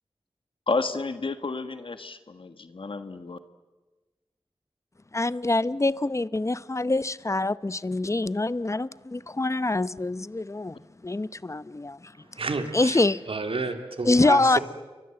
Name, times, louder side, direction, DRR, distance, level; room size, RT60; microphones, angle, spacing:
voice 1, 0.7-3.4, left 3 dB, 65° left, 1.6 m, -31 dB
voice 2, 5.1-12.1 12.7-13.2 14.0-14.6, left 2 dB, 30° left, 0.7 m, -25 dB
voice 3, 12.4-13.0 13.3-14.6, right 3 dB, 70° right, 2.9 m, -30 dB
29.0 x 23.5 x 7.8 m
wide cardioid pair, 55°, 10 cm